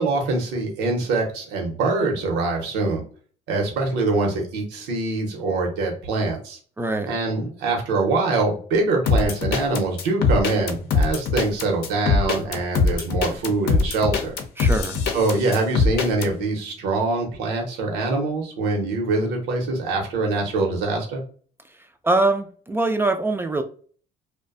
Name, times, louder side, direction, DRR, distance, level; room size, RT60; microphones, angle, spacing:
voice 1, 0.0-3.0 3.5-6.6 7.1-14.4 15.1-21.2, right 3 dB, 90° right, 1 dB, 0.8 m, -24 dB
voice 2, 6.8-7.1 14.6-15.0 22.0-23.6, right 2 dB, 15° right, 7 dB, 0.3 m, -22 dB
sound 1, 9.1-16.3, left 4 dB, 70° left, 0.6 m, -22 dB
2.5 x 2.2 x 2.4 m, 0.43 s
cardioid pair, 110°, 17 cm